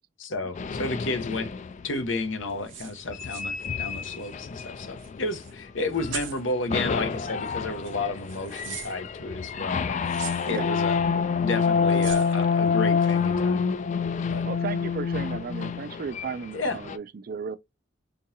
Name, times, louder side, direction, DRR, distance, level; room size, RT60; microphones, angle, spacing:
voice 1, 0.2-1.5 1.8-11.0 11.4-13.6 14.3-14.4 16.5-16.8, left 2 dB, 80° left, 1.0 m, -32 dB
sound 1, 0.6-1.9 3.1-5.6 5.9-6.3 6.7-17.0, left 6 dB, 40° left, 0.4 m, -27 dB
sound 2, 1.3-1.4 2.5-4.3 4.6-4.7 5.0-5.5 5.9-6.5 7.4-7.6 7.8-8.9 10.0-10.7 11.9-12.6 13.0-13.3, right 10 dB, 75° right, 0.8 m, -41 dB
voice 2, 11.9-12.2 14.4-17.6, right 5 dB, 50° right, 0.4 m, -35 dB
3.8 x 3.7 x 2.7 m
head